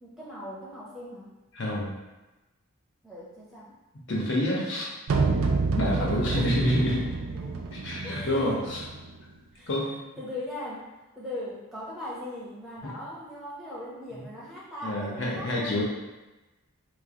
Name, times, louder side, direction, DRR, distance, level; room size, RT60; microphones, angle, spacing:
voice 1, 0.0-1.4 3.0-3.7 5.8-6.5 7.3-7.6 8.0-8.6 9.5-9.7 10.2-10.8 11.1-15.8, left 1 dB, ahead, -8 dB, 0.7 m, -39 dB
voice 2, 1.5-1.9 4.1-4.9 5.8-7.1 7.7-8.8 9.7-9.9 12.8-12.9 14.1-14.3 14.8-15.8, left 1 dB, 55° left, -3 dB, 0.7 m, -28 dB
sound 1, 5.1-9.1, right 4 dB, 80° right, 0.4 m, -28 dB
3.0 x 2.0 x 3.6 m, 1.1 s
head